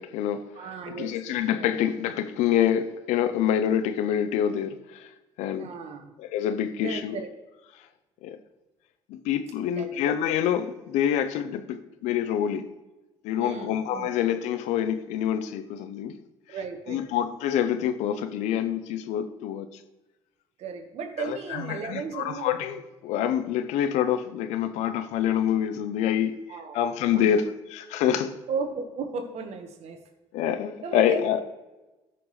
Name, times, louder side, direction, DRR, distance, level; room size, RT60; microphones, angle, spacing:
voice 1, 0.0-0.5 0.9-5.1 5.4-5.7 6.2-7.2 8.2-8.4 9.1-12.7 13.2-16.2 16.9-19.7 21.2-26.4 26.7-27.4 27.7-28.4 30.3-31.4, left 9 dB, 75° left, 0.7 m, -26 dB
voice 2, 0.5-1.8 5.6-6.1 6.8-7.3 9.7-10.0 13.4-14.1 16.5-17.1 20.6-22.6 26.5-26.8 27.1-27.3 28.5-30.0 30.8-31.4, right 5 dB, 65° right, 1.4 m, -35 dB
13.5 x 6.0 x 3.2 m
supercardioid pair, 70°, 12 cm